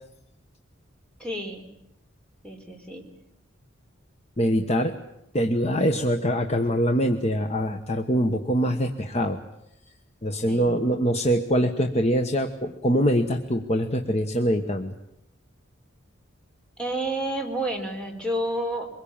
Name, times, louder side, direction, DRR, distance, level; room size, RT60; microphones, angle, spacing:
voice 1, 1.2-1.7 2.4-3.0 10.5-10.8 16.8-18.9, right 1 dB, 5° left, 2 dB, 3.8 m, -30 dB
voice 2, 4.4-5.0 5.3-9.4 10.2-14.9, equal, 35° left, 5 dB, 1.2 m, -24 dB
24.5 x 21.5 x 8.8 m, 0.80 s
head